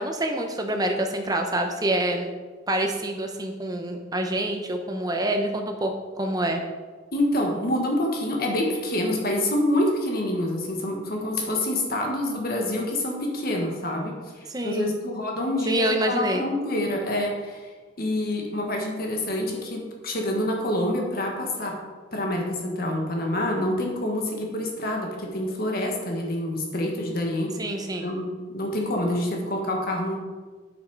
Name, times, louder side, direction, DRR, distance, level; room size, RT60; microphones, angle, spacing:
voice 1, 0.0-2.3 2.7-6.6 14.5-15.0 15.7-16.4 27.6-28.1, right 1 dB, 20° right, 4 dB, 0.8 m, -26 dB
voice 2, 7.1-17.7 18.0-21.8 22.1-27.5 28.0-30.2, left 1 dB, 50° left, 0 dB, 1.4 m, -27 dB
8.2 x 6.2 x 4.7 m, 1.4 s
head